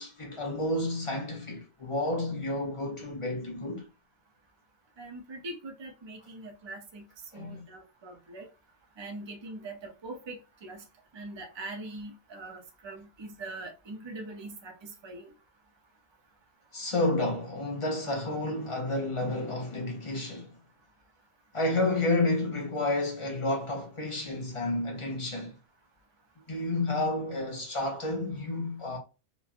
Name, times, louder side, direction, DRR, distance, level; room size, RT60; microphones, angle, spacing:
voice 1, 0.0-3.9 7.3-7.6 16.7-20.6 21.5-25.5 26.5-29.0, left 2 dB, 40° left, 0.5 m, -30 dB
voice 2, 5.0-8.5 9.0-10.8 11.1-15.3, right 2 dB, 35° right, 0.4 m, -42 dB
3.0 x 2.2 x 2.4 m
omnidirectional pair, 1.2 m